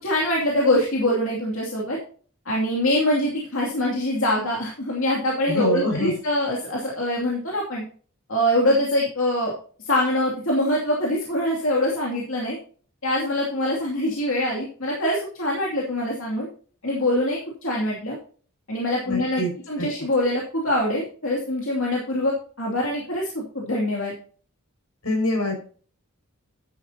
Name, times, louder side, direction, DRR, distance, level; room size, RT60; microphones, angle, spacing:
voice 1, 0.0-2.0 2.5-7.8 8.3-9.5 9.9-12.6 13.0-16.5 16.8-18.2 18.7-24.1, left 1 dB, 65° left, -2 dB, 2.6 m, -24 dB
voice 2, 5.5-6.1 19.1-19.5 19.8-19.9 25.0-25.5, left 1 dB, 80° left, 2 dB, 6.0 m, -24 dB
11.0 x 10.0 x 2.8 m, 0.43 s
head